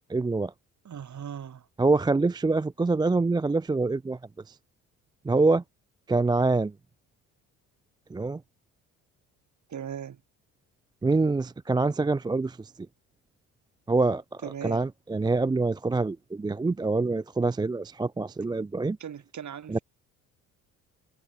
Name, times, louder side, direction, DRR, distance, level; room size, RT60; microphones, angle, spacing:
voice 1, 0.1-0.5 1.8-4.2 4.5-4.6 5.2-5.6 6.1-6.7 8.1-8.4 11.0-12.7 13.9-19.0 19.7-19.8, right 3 dB, 10° right, 0.6 m, -25 dB
voice 2, 0.8-1.7 9.7-10.2 14.4-14.8 19.0-19.8, right 8 dB, 40° right, 3.8 m, -38 dB
figure-of-eight pair, 50°, 42 cm